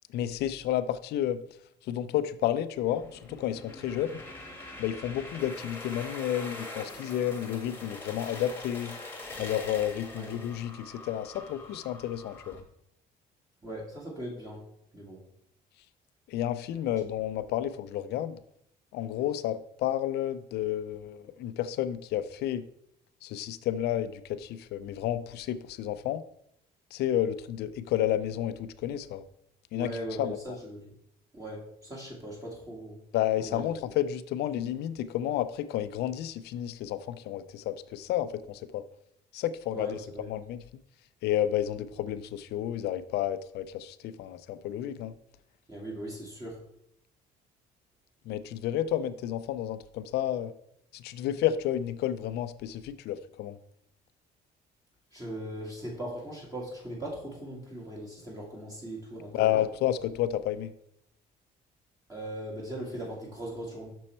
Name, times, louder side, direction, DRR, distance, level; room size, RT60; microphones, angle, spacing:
voice 1, 0.1-1.4 1.8-4.2 4.8-9.0 9.4-12.6 16.3-18.4 18.9-22.7 23.2-26.2 26.9-29.2 29.7-29.9 30.2-30.6 33.1-38.8 39.3-40.0 40.3-40.6 41.2-45.1 48.3-50.5 50.9-53.6 59.3-60.7, left 11 dB, 75° left, 13 dB, 0.5 m, -31 dB
sound 1, 2.8-12.6, left 2 dB, 15° left, 1.3 m, -43 dB
voice 2, 13.6-14.6 14.9-15.2 16.9-17.0 29.7-30.9 31.3-33.0 33.4-33.6 39.7-40.3 45.7-46.6 55.1-59.6 62.1-63.9, right 1 dB, 20° right, -3 dB, 1.7 m, -39 dB
6.2 x 5.4 x 4.3 m, 0.74 s
cardioid pair, 110°, 17 cm